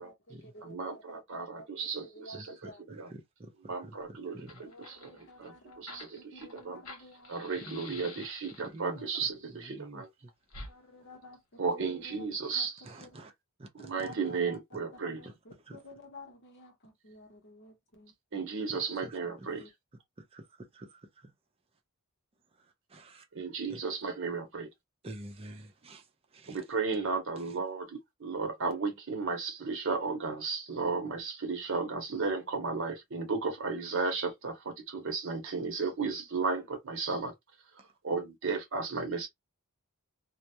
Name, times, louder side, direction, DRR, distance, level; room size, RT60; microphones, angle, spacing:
voice 1, 0.0-1.7 2.0-2.8 4.5-7.3 8.9-9.1 10.7-12.3 12.5-13.2 13.7-14.8 15.2-18.1 19.6-19.7, left 1 dB, 55° left, 0.8 m, -52 dB
voice 2, 0.6-2.5 2.9-3.1 3.7-6.8 7.3-10.1 11.6-12.8 13.7-15.2 18.3-19.6 23.3-24.7 26.5-37.3 37.7-39.3, right 4 dB, 60° right, 0.7 m, -34 dB
voice 3, 2.3-4.6 7.6-8.3 8.6-9.0 9.5-10.0 12.8-13.3 13.6-13.9 15.7-15.8 18.7-19.5 20.2-21.3 22.6-23.2 23.7-23.8 25.0-26.6 37.8-37.9, right 1 dB, 25° right, 0.5 m, -48 dB
Fire, 4.0-4.1 4.3-8.9 10.5-10.7, left 3 dB, 85° left, 0.9 m, -48 dB
2.2 x 2.0 x 2.8 m
head